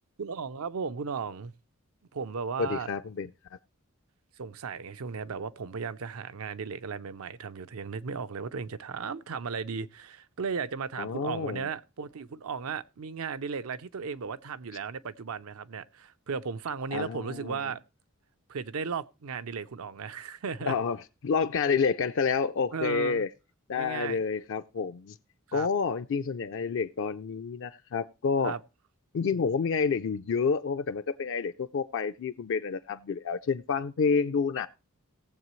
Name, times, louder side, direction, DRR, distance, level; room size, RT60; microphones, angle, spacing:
voice 1, 0.2-1.5 2.1-2.9 4.4-17.8 18.5-20.7 22.7-23.2 23.8-24.2 25.5-25.7 28.4-28.6, right 5 dB, 80° right, 0.6 m, -35 dB
voice 2, 2.6-3.3 11.0-11.7 16.9-17.6 20.7-21.0 21.2-23.3 23.7-25.1 25.5-28.6 29.1-34.7, left 5 dB, 60° left, 0.4 m, -29 dB
18.0 x 7.4 x 3.1 m
head